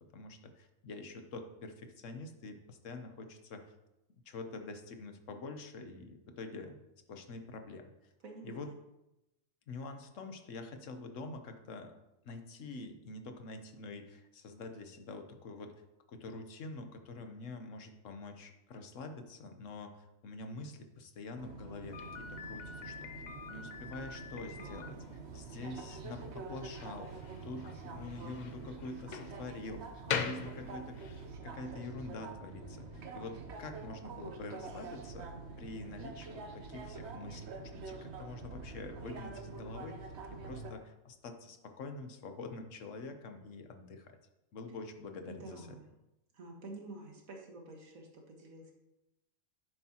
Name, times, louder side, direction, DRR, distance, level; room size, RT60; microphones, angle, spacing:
voice 1, 0.1-3.7 4.3-6.8 7.1-7.8 8.4-8.7 9.7-12.0 12.2-15.7 16.1-25.0 25.3-31.0 31.4-35.3 35.6-44.2 44.5-45.7, left 3 dB, 70° left, 6 dB, 1.2 m, -46 dB
voice 2, 8.2-8.7 24.6-25.0 45.3-45.8 46.3-48.7, right 2 dB, 90° right, 1 dB, 1.9 m, -49 dB
sound 1, 21.4-40.7, right 4 dB, 60° right, 1.1 m, -46 dB
Slam, 21.9-31.3, left 6 dB, 50° left, 0.5 m, -43 dB
10.0 x 7.7 x 2.9 m, 0.92 s
omnidirectional pair, 1.4 m